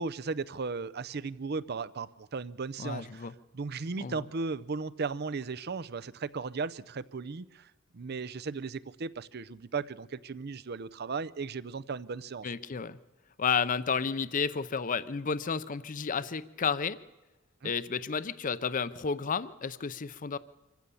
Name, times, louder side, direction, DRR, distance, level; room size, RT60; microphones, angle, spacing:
voice 1, 0.0-3.3 3.5-12.5 17.6-17.7, right 4 dB, 55° right, 16 dB, 0.6 m, -36 dB
voice 2, 2.8-3.3 4.0-4.2 12.4-13.0 13.4-17.0 17.6-20.4, left 5 dB, 40° left, 15 dB, 0.6 m, -31 dB
25.5 x 15.5 x 7.0 m, 1.1 s
head